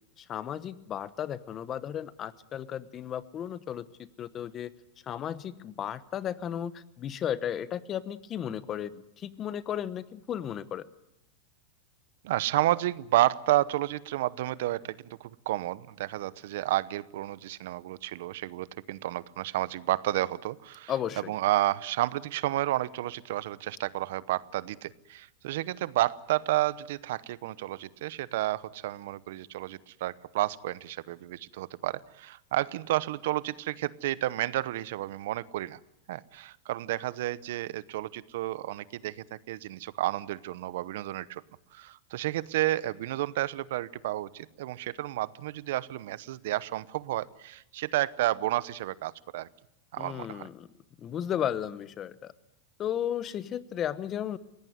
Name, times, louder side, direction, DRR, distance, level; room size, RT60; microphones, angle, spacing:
voice 1, 0.2-4.7 5.1-10.8 20.9-21.3 50.0-50.7 51.0-52.3 52.8-54.4, left 10 dB, 30° left, 16 dB, 1.0 m, -34 dB
voice 2, 12.2-35.8 36.1-41.4 41.7-49.5 49.9-50.5, right 15 dB, 70° right, 19 dB, 0.8 m, -31 dB
21.5 x 17.5 x 9.6 m, 0.82 s
supercardioid pair, 130°, 0 cm